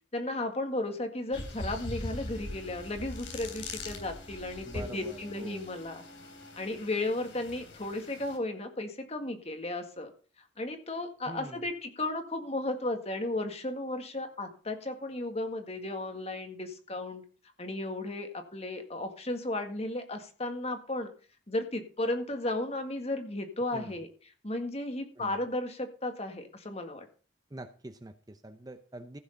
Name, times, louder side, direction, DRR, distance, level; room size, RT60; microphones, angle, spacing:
voice 1, 0.1-6.0 6.6-10.1 10.6-17.2 17.6-21.1 21.5-24.1 24.4-27.0, left 2 dB, 35° left, 6 dB, 1.8 m, -34 dB
sound 1, 1.3-8.4, left 2 dB, 90° left, 3.3 m, -42 dB
Wind instrument woodwind instrument, 2.0-6.8, left 1 dB, 70° left, 3.9 m, -54 dB
voice 2, 4.6-5.7 11.2-11.7 23.7-24.0 25.2-25.4 27.5-29.2, right 1 dB, 20° right, 8 dB, 0.8 m, -45 dB
15.0 x 6.4 x 5.2 m, 0.37 s
head